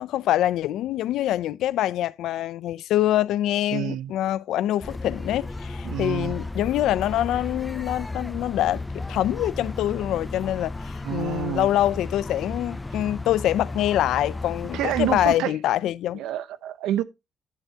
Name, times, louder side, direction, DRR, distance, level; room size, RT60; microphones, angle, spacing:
voice 1, 0.0-16.2, left 13 dB, 85° left, 0.5 m, -25 dB
voice 2, 3.7-4.1 5.8-6.4 11.0-11.7 12.9-13.0 14.7-15.5 16.1-17.0, right 12 dB, 90° right, 0.8 m, -28 dB
sound 1, 4.8-15.4, left 2 dB, 15° left, 0.5 m, -34 dB
10.5 x 8.0 x 2.8 m
cardioid pair, 90°, 0 cm